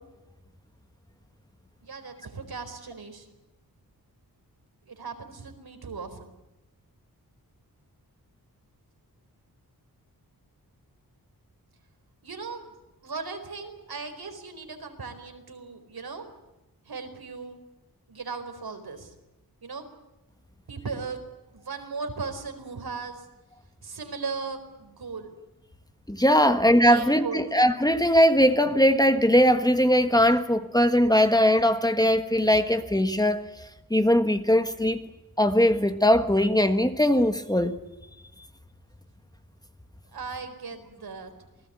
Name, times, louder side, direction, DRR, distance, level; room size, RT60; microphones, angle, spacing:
voice 1, 1.8-3.3 4.9-6.3 12.2-12.7 13.0-16.2 16.9-17.6 18.1-19.1 19.6-19.9 20.7-21.2 21.5-23.3 23.8-25.3 26.4-26.6 26.9-27.5 40.1-41.3, right 4 dB, 80° right, 4.5 m, -37 dB
voice 2, 26.1-33.4 33.9-35.0 35.4-37.7, equal, 10° left, 1.4 m, -20 dB
28.0 x 19.0 x 8.7 m
wide cardioid pair, 125°, 37 cm